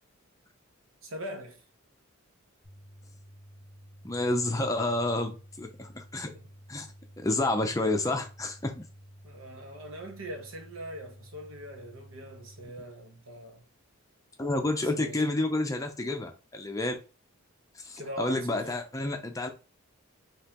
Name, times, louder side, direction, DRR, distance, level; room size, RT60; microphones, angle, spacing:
voice 1, 1.0-1.6 6.3-6.4 9.2-13.6 14.8-15.2 18.0-18.7, equal, 70° right, 1.1 m, -42 dB
sound 1, 2.6-12.6, equal, 10° right, 1.7 m, -52 dB
voice 2, 4.0-6.3 6.7-6.9 7.2-8.8 14.4-16.9 17.8-19.5, left 2 dB, 15° left, 0.5 m, -29 dB
5.4 x 3.0 x 2.9 m
head